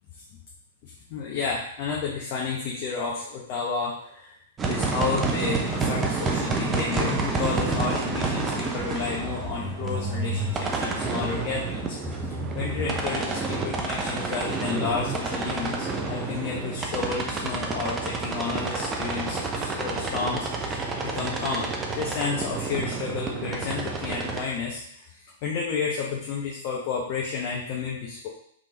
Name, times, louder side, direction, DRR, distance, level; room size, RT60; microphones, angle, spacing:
voice 1, 0.8-4.3 4.7-12.0 12.5-28.3, left 5 dB, 40° left, -2 dB, 0.9 m, -31 dB
sound 1, 4.6-24.4, right 3 dB, 20° right, 0.7 m, -29 dB
5.0 x 3.6 x 2.9 m, 0.68 s
figure-of-eight pair, 110°, 0 cm